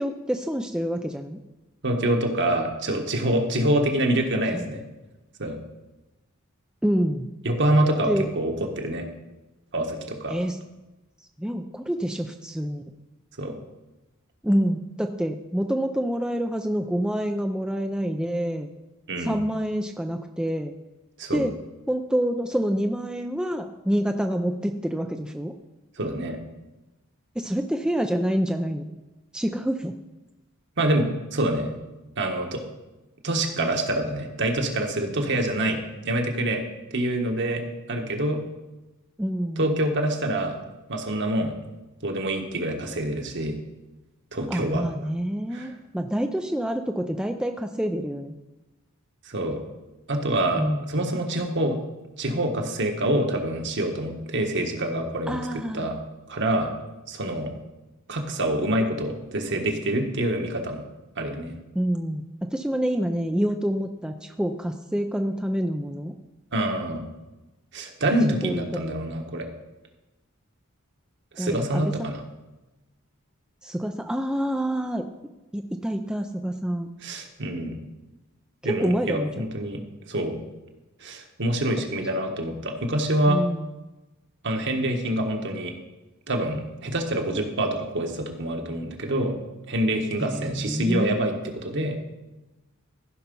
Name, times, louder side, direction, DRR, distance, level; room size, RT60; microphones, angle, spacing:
voice 1, 0.0-1.4 4.5-4.7 6.8-7.3 8.1-8.3 10.3-10.6 11.4-12.8 14.4-18.7 19.2-20.7 21.3-21.5 21.9-25.5 27.4-28.9 29.3-29.9 39.2-39.6 44.5-48.3 50.6-51.1 55.3-55.9 61.7-62.2 62.5-66.1 68.4-68.8 71.4-72.1 73.6-75.1 75.5-76.9 78.6-79.5 83.3-83.7 90.2-91.2, equal, 5° right, 5 dB, 0.4 m, -27 dB
voice 2, 1.8-4.8 5.4-5.6 7.4-9.1 9.7-10.3 13.4-13.6 19.1-19.4 21.2-21.5 26.0-26.4 30.8-31.7 32.2-32.6 33.2-36.6 36.9-37.6 37.9-38.4 39.6-40.6 40.9-41.5 42.0-43.6 44.3-44.8 45.5-45.7 49.3-49.6 50.1-50.6 50.9-51.8 52.2-55.4 55.7-55.9 56.3-56.7 57.1-57.5 58.1-60.8 61.2-61.5 66.5-67.1 67.7-69.5 71.3-72.2 77.0-77.8 78.6-79.8 80.1-80.4 81.0-83.4 84.4-85.7 86.3-89.4 89.7-92.0, right 1 dB, 55° right, 3 dB, 1.4 m, -26 dB
15.0 x 5.7 x 5.4 m, 1.1 s
head